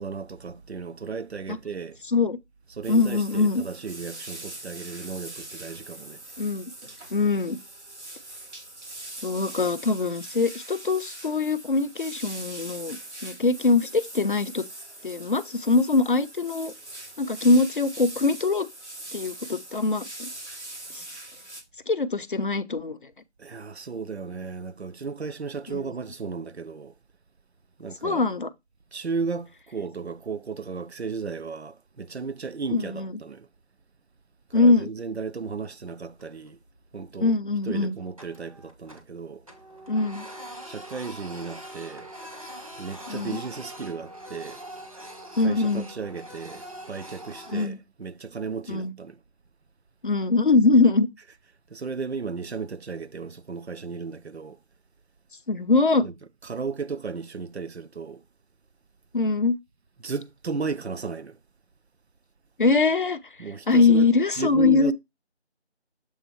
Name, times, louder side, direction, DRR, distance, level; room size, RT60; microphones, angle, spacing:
voice 1, 0.0-2.0 2.7-6.2 23.4-26.9 27.8-28.2 28.9-33.5 34.5-36.6 36.9-37.4 37.7-39.4 40.6-42.1 42.8-44.6 45.4-49.2 51.7-54.6 56.0-56.1 56.4-58.2 60.0-61.4 63.4-64.9, right 5 dB, 70° right, 0.7 m, -34 dB
sound 1, 2.8-21.6, right 2 dB, 85° right, 2.4 m, -42 dB
voice 2, 2.9-3.6 6.4-6.7 7.1-7.6 9.2-14.6 15.0-16.7 17.2-18.7 19.1-20.3 20.9-21.0 21.9-23.0 25.7-25.9 28.0-28.5 32.7-33.2 34.5-34.9 37.2-38.0 39.9-40.3 43.1-43.4 45.4-45.9 47.5-47.8 48.7-48.9 50.0-51.1 55.5-56.1 59.1-59.6 62.6-63.2 63.7-64.9, left 3 dB, 50° left, 0.6 m, -22 dB
Printer, 36.1-36.7 37.0-37.2 37.6-39.2 39.4-47.7, equal, 30° right, 0.9 m, -43 dB
7.2 x 3.5 x 4.3 m
figure-of-eight pair, 170°, 34 cm